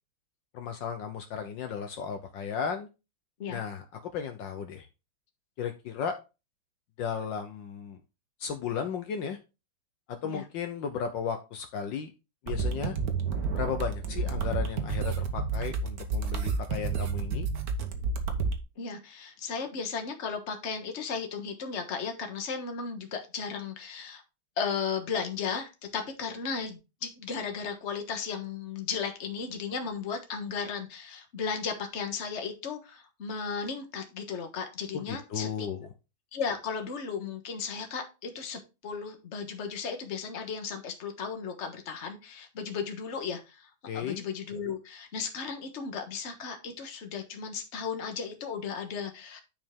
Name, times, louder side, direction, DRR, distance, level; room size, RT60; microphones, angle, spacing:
voice 1, 0.5-2.9 3.5-4.9 5.6-6.1 7.0-8.0 8.4-9.4 10.1-12.1 12.4-13.0 13.5-17.5 34.9-35.9 43.9-44.2, left 7 dB, 70° left, 6 dB, 1.5 m, -35 dB
sound 1, 12.5-18.6, right 4 dB, 50° right, 1.4 m, -30 dB
voice 2, 18.8-24.2 24.6-35.7 36.3-49.4, left 6 dB, 40° left, 5 dB, 1.4 m, -35 dB
9.7 x 4.9 x 3.7 m, 0.28 s
omnidirectional pair, 2.2 m